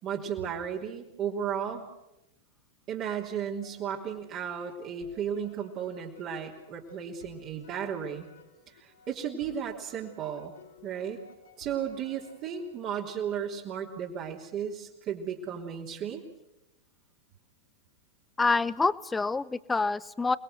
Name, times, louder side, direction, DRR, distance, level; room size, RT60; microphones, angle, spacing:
voice 1, 0.0-1.8 2.9-8.3 8.8-10.5 10.8-11.2 11.6-16.2, right 8 dB, 35° right, -1 dB, 3.3 m, -34 dB
sound 1, 3.6-12.9, left 5 dB, 65° left, 4.6 m, -57 dB
voice 2, 18.4-20.4, left 3 dB, 10° left, 19 dB, 0.8 m, -27 dB
29.0 x 21.0 x 6.5 m, 0.88 s
figure-of-eight pair, 90°, 0 cm